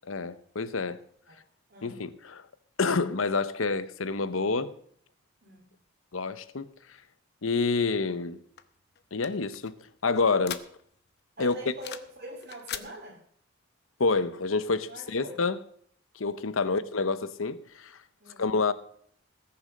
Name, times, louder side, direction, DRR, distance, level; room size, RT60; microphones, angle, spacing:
voice 1, 0.1-1.0 1.8-2.4 2.8-4.7 6.1-6.7 7.4-8.4 9.1-9.7 10.0-10.6 11.4-11.6 14.0-15.6 16.2-18.0 18.4-18.7, left 4 dB, 85° left, 0.9 m, -28 dB
voice 2, 5.4-5.7 11.4-13.2 14.9-15.4 16.6-16.8 18.2-18.5, right 1 dB, 50° right, 2.5 m, -44 dB
sound 1, 8.6-11.1 11.4-12.2 12.4-12.9, left 10 dB, 55° left, 0.9 m, -41 dB
19.5 x 7.0 x 6.5 m
head